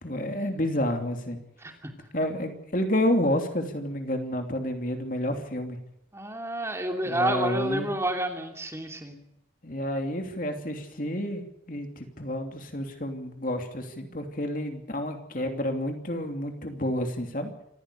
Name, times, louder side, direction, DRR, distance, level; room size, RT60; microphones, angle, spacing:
voice 1, 0.0-1.4 2.1-5.8 7.0-7.9 9.6-17.5, left 1 dB, 45° left, 5 dB, 3.0 m, -30 dB
voice 2, 1.6-1.9 6.1-9.2, right 1 dB, 15° right, 4 dB, 2.8 m, -29 dB
26.5 x 15.0 x 6.9 m, 0.82 s
head